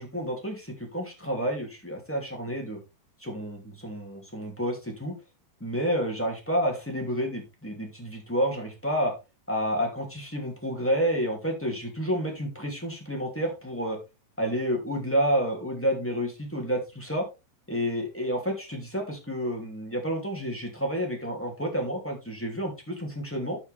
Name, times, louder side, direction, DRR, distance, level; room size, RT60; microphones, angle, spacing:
voice 1, 0.0-2.8 3.2-5.1 5.6-9.1 9.5-14.0 14.4-17.3 17.7-23.6, equal, 5° left, 1 dB, 1.3 m, -29 dB
14.0 x 4.9 x 3.4 m, 0.27 s
omnidirectional pair, 5.0 m